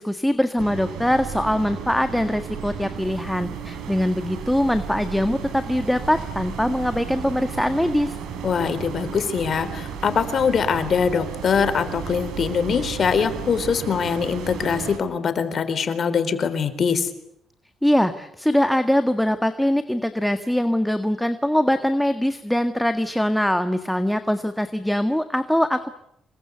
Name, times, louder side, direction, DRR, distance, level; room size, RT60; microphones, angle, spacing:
voice 1, 0.0-8.2 17.8-25.9, equal, 5° left, 8 dB, 1.7 m, -22 dB
sound 1, 0.6-15.0, right 7 dB, 85° right, 5.8 m, -34 dB
voice 2, 8.4-17.1, left 6 dB, 55° left, 12 dB, 4.0 m, -23 dB
27.5 x 23.0 x 8.2 m, 0.76 s
cardioid pair, 90°, 0 cm